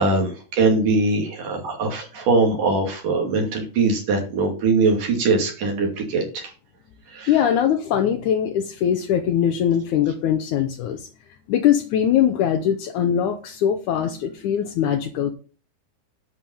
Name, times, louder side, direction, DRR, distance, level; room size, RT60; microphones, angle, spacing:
voice 1, 0.0-6.5 7.1-7.3, right 3 dB, 60° right, 1 dB, 4.1 m, -21 dB
voice 2, 7.3-11.1 11.5-15.3, left 9 dB, 70° left, 5 dB, 2.0 m, -21 dB
11.0 x 5.6 x 7.1 m, 0.37 s
omnidirectional pair, 4.3 m